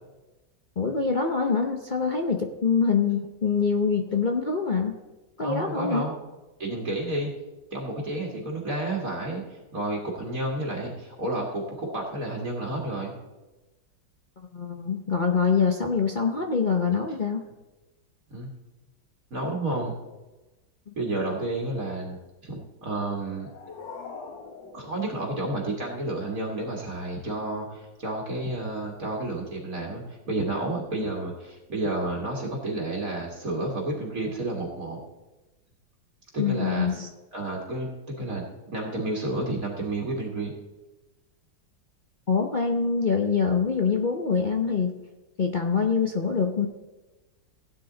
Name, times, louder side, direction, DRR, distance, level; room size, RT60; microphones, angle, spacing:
voice 1, 0.8-4.9 5.4-6.1 14.5-17.4 20.9-21.0 36.4-37.1 42.3-45.0 45.4-46.7, left 5 dB, 45° left, 3 dB, 0.6 m, -25 dB
voice 2, 5.4-6.1 6.6-7.3 7.7-13.1 18.3-18.5 19.3-20.0 21.0-22.2 22.4-23.5 24.7-35.0 36.3-36.9 37.3-38.5 38.7-40.5, right 2 dB, 50° right, -1 dB, 2.2 m, -31 dB
sound 1, 23.0-26.0, left 4 dB, 85° left, 1.8 m, -44 dB
16.0 x 9.2 x 3.9 m, 1.1 s
omnidirectional pair, 1.9 m